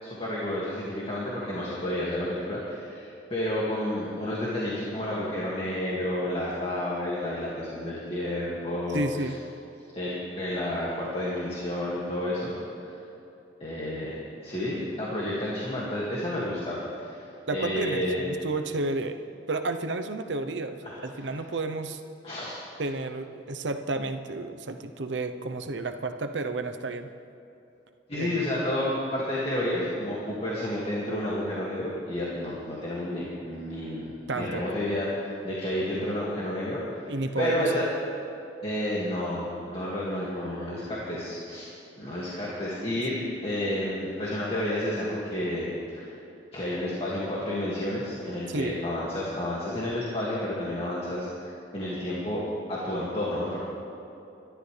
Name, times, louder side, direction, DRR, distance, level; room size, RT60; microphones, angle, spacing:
voice 1, 0.0-9.0 9.9-12.5 12.8-13.0 13.6-14.2 14.4-17.2 17.5-18.2 20.8-21.3 22.2-22.5 28.1-37.1 37.4-37.9 38.6-41.7 42.0-43.2 43.4-46.1 46.5-52.4 52.7-53.6, left 1 dB, 30° left, -7 dB, 2.2 m, -30 dB
voice 2, 8.9-9.3 17.5-19.2 19.5-22.0 22.8-27.1 28.1-28.4 34.3-34.6 37.1-37.7 42.9-43.0 48.5-48.8, right 2 dB, 80° right, 7 dB, 0.9 m, -31 dB
24.5 x 12.0 x 3.4 m, 2.9 s
head